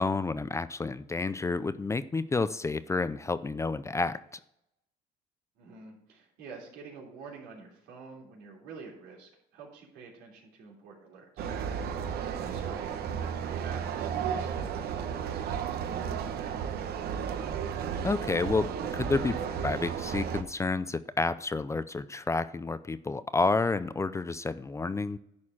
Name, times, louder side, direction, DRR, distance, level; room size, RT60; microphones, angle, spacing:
voice 1, 0.0-4.2 18.0-25.2, left 3 dB, 15° left, 14 dB, 0.4 m, -30 dB
voice 2, 5.5-11.5 12.3-16.6, right 4 dB, 90° right, -1 dB, 3.3 m, -48 dB
sound 1, 11.4-20.4, right 7 dB, 70° right, 1.0 m, -33 dB
11.0 x 4.3 x 7.3 m, 0.79 s
cardioid pair, 110°, 17 cm